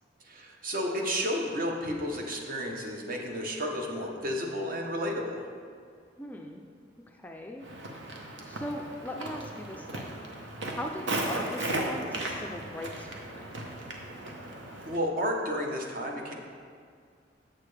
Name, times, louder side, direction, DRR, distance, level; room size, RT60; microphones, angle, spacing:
voice 1, 0.2-5.4 11.3-11.4 14.9-16.3, equal, 50° right, 1 dB, 0.9 m, -32 dB
voice 2, 6.2-6.6 7.1-7.6 8.5-10.1 10.7-13.5, left 1 dB, 10° left, 2 dB, 0.3 m, -39 dB
Walk footsteps, 7.6-15.0, right 1 dB, 85° right, 0.9 m, -36 dB
7.4 x 6.5 x 3.3 m, 2.1 s
head